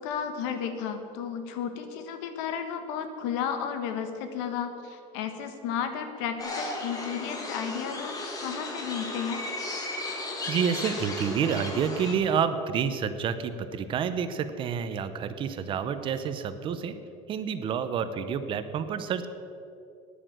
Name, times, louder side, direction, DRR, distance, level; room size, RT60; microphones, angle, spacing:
voice 1, 0.0-9.4, left 7 dB, 80° left, 8 dB, 1.5 m, -33 dB
sound 1, 6.4-12.2, left 2 dB, 25° left, 1.7 m, -35 dB
voice 2, 10.5-17.0 17.3-19.3, right 7 dB, 35° right, 11 dB, 0.7 m, -29 dB
10.0 x 9.8 x 7.5 m, 2.6 s
cardioid pair, 160°, 16 cm